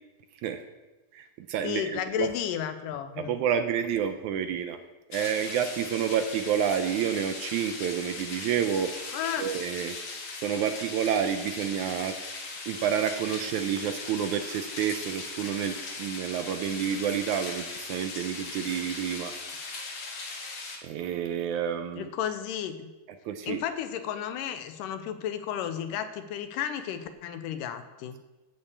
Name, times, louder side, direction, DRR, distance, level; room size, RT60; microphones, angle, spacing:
voice 1, 1.1-2.3 3.2-4.8 5.1-8.9 9.4-10.0 10.4-12.2 12.7-19.3 20.8-22.1 23.3-23.6, right 8 dB, 75° right, 8 dB, 1.9 m, -29 dB
voice 2, 1.6-3.4 9.1-9.5 22.0-22.9 23.5-28.2, left 9 dB, 85° left, 9 dB, 2.3 m, -33 dB
sound 1, 5.1-20.8, left 3 dB, 50° left, 2.2 m, -39 dB
12.0 x 5.6 x 8.3 m, 1.2 s
omnidirectional pair, 3.8 m